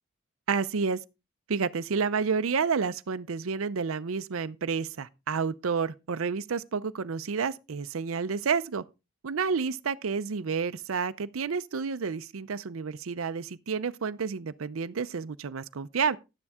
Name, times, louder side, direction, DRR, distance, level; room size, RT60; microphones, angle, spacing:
voice 1, 0.5-1.0 1.5-8.8 9.2-16.2, right 5 dB, 75° right, 0.5 m, -30 dB
11.5 x 9.7 x 3.5 m
head